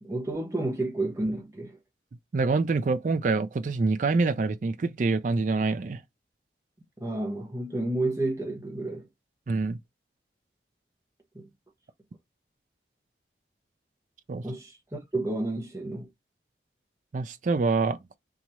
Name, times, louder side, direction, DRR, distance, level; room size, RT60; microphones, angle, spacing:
voice 1, 0.0-1.8 7.0-9.1 11.3-11.5 14.4-16.1, right 2 dB, 15° right, 0.7 m, -31 dB
voice 2, 2.3-6.0 9.5-9.8 14.3-14.4 17.1-18.2, right 3 dB, 45° right, 0.4 m, -26 dB
2.9 x 2.4 x 4.1 m
head